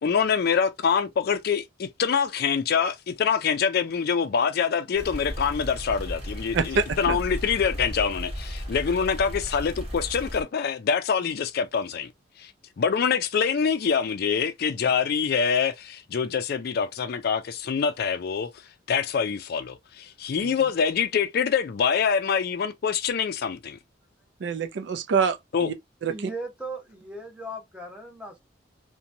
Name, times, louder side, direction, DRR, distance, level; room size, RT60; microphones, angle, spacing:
voice 1, 0.0-12.1 12.4-12.5 12.8-18.5 18.9-23.8 25.5-25.7, left 6 dB, 55° left, 0.4 m, -25 dB
sound 1, 4.9-10.4, equal, 30° right, 1.0 m, -35 dB
voice 2, 6.5-7.2 20.4-20.6 24.4-25.7 26.0-26.3, right 5 dB, 65° right, 0.4 m, -26 dB
voice 3, 26.1-28.4, right 1 dB, 5° right, 0.8 m, -37 dB
2.9 x 2.2 x 2.5 m
head